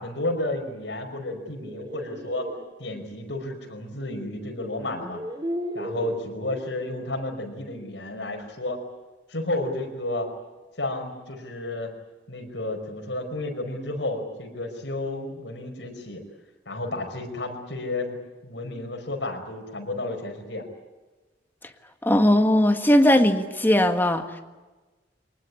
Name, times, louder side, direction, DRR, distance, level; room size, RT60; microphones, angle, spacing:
voice 1, 0.0-2.5 2.8-5.2 5.7-8.8 9.3-10.3 10.8-11.9 12.3-16.2 16.7-20.7, left 2 dB, 75° left, 3 dB, 5.2 m, -32 dB
sound 1, 1.4-2.6 4.1-4.2 4.9-6.3, equal, 25° right, 2.6 m, -34 dB
voice 2, 22.0-24.4, left 1 dB, 10° left, 6 dB, 1.6 m, -19 dB
23.5 x 20.0 x 9.7 m, 1.2 s
head